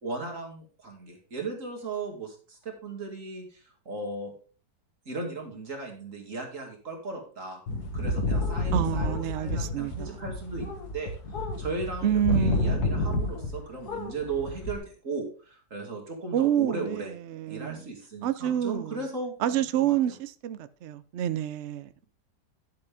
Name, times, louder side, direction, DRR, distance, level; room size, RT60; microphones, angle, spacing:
voice 1, 0.0-4.3 5.1-7.6 7.9-11.1 11.6-17.1 17.5-20.1, right 3 dB, 45° right, 2.7 m, -37 dB
sound 1, 7.7-13.6 13.9-14.8, left 1 dB, 65° left, 2.0 m, -29 dB
voice 2, 8.7-10.2 12.0-13.1 16.3-17.8 18.2-19.0 19.4-22.0, right 10 dB, 75° right, 0.6 m, -28 dB
10.5 x 7.8 x 3.5 m
omnidirectional pair, 1.8 m